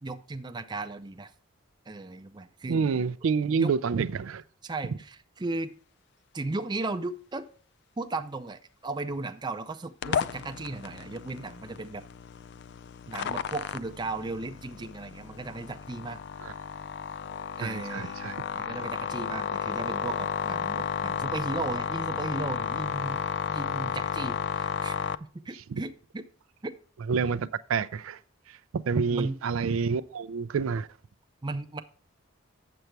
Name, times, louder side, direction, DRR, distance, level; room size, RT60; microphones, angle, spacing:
voice 1, 0.0-1.3 1.9-2.8 3.5-3.7 4.6-5.7 6.3-7.5 8.0-12.0 13.1-16.2 17.6-18.2 18.6-23.2 23.5-26.2 26.6-26.7 29.1-29.4 31.4-31.8, right 3 dB, 20° right, 0.5 m, -36 dB
voice 2, 2.7-4.4 16.4-16.5 17.6-18.4 25.7-25.8 27.1-28.2 28.9-30.9, right 5 dB, 85° right, 0.4 m, -28 dB
sound 1, 10.0-25.2, left 7 dB, 55° left, 0.3 m, -33 dB
7.8 x 6.9 x 4.6 m
head